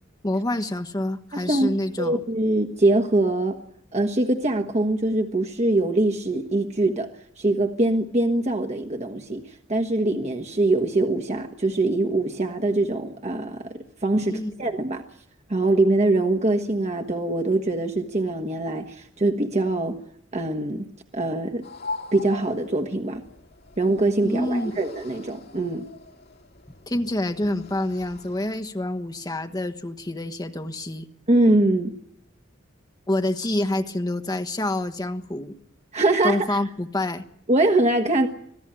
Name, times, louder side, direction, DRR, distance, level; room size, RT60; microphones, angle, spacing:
voice 1, 0.2-2.2 14.2-14.5 24.2-24.7 26.9-31.1 33.1-35.5 36.2-37.2, left 1 dB, 20° left, 7 dB, 1.3 m, -27 dB
voice 2, 1.3-1.7 2.0-3.6 3.9-7.1 7.4-13.7 14.0-15.0 15.5-20.0 20.3-21.6 22.1-23.2 23.8-25.9 31.3-31.9 35.9-36.6 37.5-38.3, right 2 dB, 35° right, 4 dB, 1.4 m, -23 dB
sound 1, 21.6-28.6, left 3 dB, 55° left, 2.4 m, -41 dB
26.0 x 17.5 x 9.0 m, 0.74 s
head